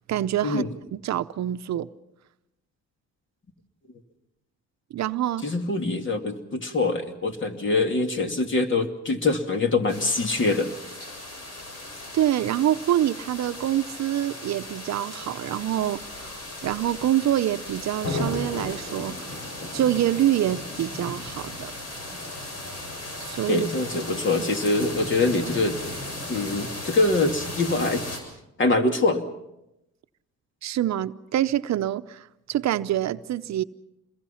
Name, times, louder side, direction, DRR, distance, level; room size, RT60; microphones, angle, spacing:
voice 1, 0.1-1.9 4.9-5.4 12.1-16.3 16.6-19.4 19.7-21.7 23.2-23.7 30.6-33.6, right 12 dB, 65° right, 0.8 m, -26 dB
voice 2, 5.4-10.7 23.5-25.8 26.3-28.0 28.6-29.2, left 3 dB, 40° left, 2.6 m, -24 dB
sound 1, 9.9-28.2, left 2 dB, 55° left, 6.8 m, -36 dB
27.5 x 22.0 x 5.8 m
cardioid pair, 90°, 30 cm